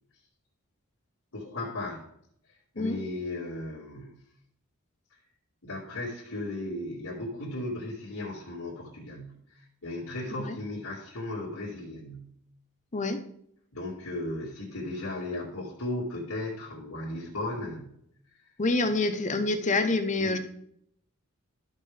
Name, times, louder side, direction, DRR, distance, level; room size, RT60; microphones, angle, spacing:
voice 1, 1.3-2.0 2.7-4.2 5.6-12.4 13.7-18.0 20.2-20.4, left 1 dB, 75° left, -7 dB, 2.0 m, -36 dB
voice 2, 12.9-13.2 18.6-20.4, left 2 dB, 35° left, 8 dB, 0.8 m, -26 dB
13.5 x 5.5 x 3.4 m, 0.70 s
head